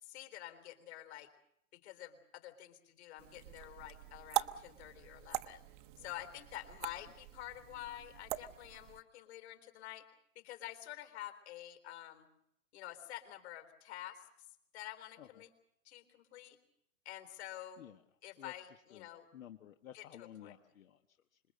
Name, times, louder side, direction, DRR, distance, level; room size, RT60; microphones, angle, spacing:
voice 1, 0.0-1.3 1.7-5.6 6.0-10.1 10.4-12.3 12.7-14.2 14.7-15.5 15.8-16.6 17.1-17.8 18.2-19.3 19.9-20.0 20.4-20.5, left 13 dB, 50° left, 7 dB, 3.9 m, -48 dB
sound 1, 3.2-9.0, right 16 dB, 35° right, 0.8 m, -43 dB
voice 2, 17.8-21.4, left 10 dB, 65° left, 7 dB, 1.5 m, -55 dB
26.5 x 21.5 x 6.7 m, 0.77 s
hypercardioid pair, 145°, 43 cm